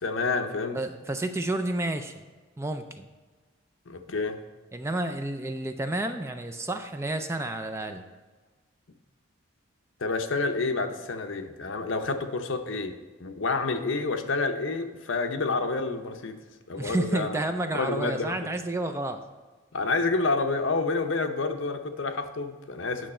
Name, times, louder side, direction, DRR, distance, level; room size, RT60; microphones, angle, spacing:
voice 1, 0.0-0.8 3.9-4.4 10.0-16.4 16.7-17.4 17.7-18.4 19.7-23.1, left 3 dB, 70° left, 6 dB, 0.7 m, -29 dB
voice 2, 0.7-2.2 2.6-3.1 4.7-8.0 16.8-19.2, right 1 dB, 15° right, 7 dB, 0.4 m, -30 dB
9.1 x 6.2 x 4.3 m, 1.3 s
head